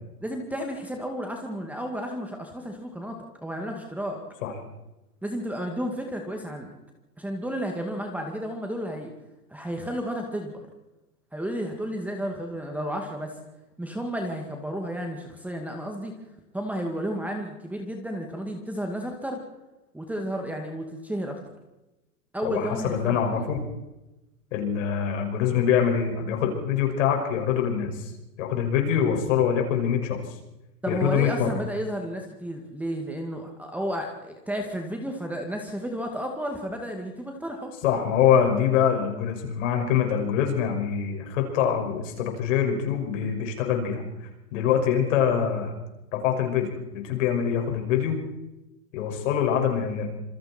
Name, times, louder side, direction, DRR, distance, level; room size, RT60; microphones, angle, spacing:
voice 1, 0.2-4.2 5.2-6.7 7.2-9.1 9.5-10.6 11.3-13.4 13.8-16.1 16.5-19.4 19.9-21.4 22.3-23.4 30.8-37.7, equal, 5° right, 3 dB, 2.1 m, -32 dB
voice 2, 22.4-23.6 24.5-28.1 28.4-30.2 30.9-31.5 37.8-44.0 44.5-45.7 46.1-48.2 48.9-50.1, left 8 dB, 50° left, 3 dB, 6.0 m, -24 dB
27.0 x 22.5 x 4.5 m, 0.99 s
hypercardioid pair, 135°, 47 cm